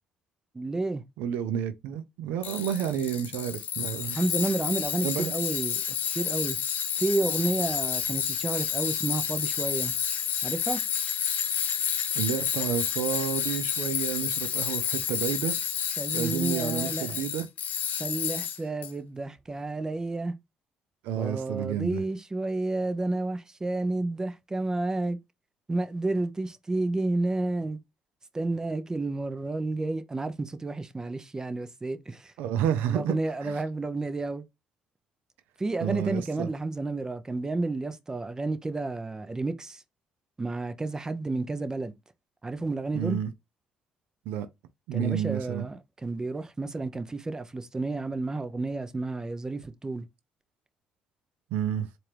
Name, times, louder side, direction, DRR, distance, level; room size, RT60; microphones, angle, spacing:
voice 1, 0.5-1.0 4.1-5.8 6.1-6.6 7.0-10.0 10.4-10.8 16.0-17.2 18.0-20.3 21.1-25.2 25.7-27.8 28.3-32.3 32.9-34.4 35.6-39.8 40.4-41.9 42.4-43.2 44.9-50.1, right 2 dB, 20° right, 0.7 m, -31 dB
voice 2, 1.2-4.2 5.0-5.3 12.2-15.6 16.1-17.5 21.0-22.0 32.4-33.6 35.8-36.5 42.9-43.3 44.3-44.5 44.9-45.6 51.5-51.9, right 9 dB, 80° right, 0.5 m, -30 dB
Tools, 2.4-18.9, left 8 dB, 60° left, 0.7 m, -30 dB
4.2 x 2.5 x 3.3 m
supercardioid pair, 70°, 3 cm